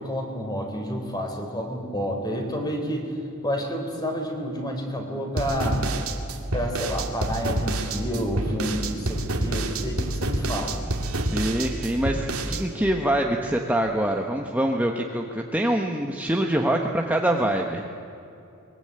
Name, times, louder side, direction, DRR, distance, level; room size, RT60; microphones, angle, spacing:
voice 1, 0.0-3.1 3.4-5.8 6.5-10.8, equal, 20° left, 3 dB, 3.9 m, -29 dB
sound 1, 5.4-12.6, right 1 dB, 70° right, 2.4 m, -28 dB
voice 2, 11.3-17.8, right 1 dB, 5° right, 1 dB, 1.2 m, -24 dB
23.5 x 23.0 x 8.9 m, 2.8 s
head